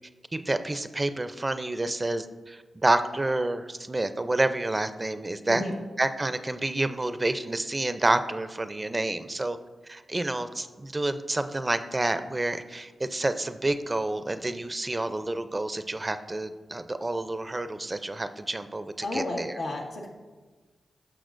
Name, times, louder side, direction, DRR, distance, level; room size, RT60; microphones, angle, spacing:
voice 1, 0.3-5.6 6.0-9.6 9.8-19.6, right 2 dB, 30° right, 10 dB, 0.5 m, -29 dB
voice 2, 19.0-20.1, left 2 dB, 90° left, -4 dB, 1.7 m, -32 dB
14.0 x 6.0 x 2.6 m, 1.3 s
cardioid pair, 45°, 0 cm